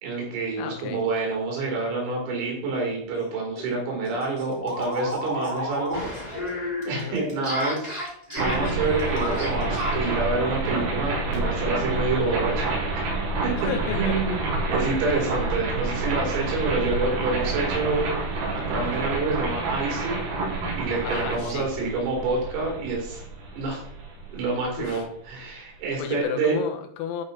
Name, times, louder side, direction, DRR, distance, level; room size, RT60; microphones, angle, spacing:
voice 1, 0.0-6.0 6.4-12.7 13.4-13.5 13.9-18.1 18.6-20.2 20.7-23.2 23.5-23.8 24.3-26.6, right 3 dB, 90° right, -1 dB, 6.1 m, -28 dB
voice 2, 0.6-1.0 6.9-7.2 13.6-14.2 21.1-21.7 24.8-25.1 26.0-27.2, left 7 dB, 85° left, 6 dB, 3.8 m, -32 dB
sound 1, 3.1-3.3 3.6-3.7 4.0-10.1, equal, 15° right, 1.9 m, -31 dB
sound 2, 8.4-25.3, right 3 dB, 70° right, 5.6 m, -28 dB
sound 3, 16.3-19.0, right 1 dB, 50° right, 4.0 m, -45 dB
13.5 x 5.1 x 4.2 m, 0.63 s
omnidirectional pair, 5.8 m